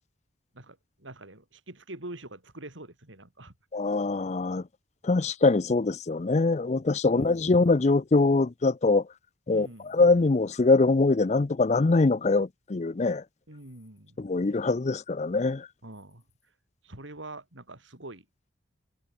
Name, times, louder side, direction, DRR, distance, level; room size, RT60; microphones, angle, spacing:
voice 1, 0.5-3.5 7.0-7.4 9.5-10.0 13.5-14.2 15.8-16.2 16.8-18.2, right 2 dB, 75° right, 4.5 m, -44 dB
voice 2, 3.7-4.6 5.0-9.0 9.5-13.2 14.2-15.7, left 3 dB, 35° left, 0.5 m, -23 dB
head